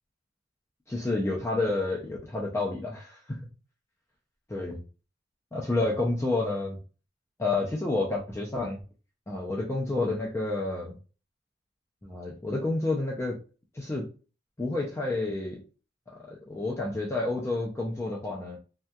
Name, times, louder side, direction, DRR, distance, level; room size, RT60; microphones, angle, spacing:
voice 1, 0.9-3.4 4.5-4.8 5.5-6.8 7.4-8.8 9.3-11.0 12.0-13.4 13.7-14.1 14.6-15.6 16.1-18.6, left 2 dB, 15° left, -3 dB, 0.4 m, -29 dB
2.7 x 2.3 x 2.2 m, 0.35 s
head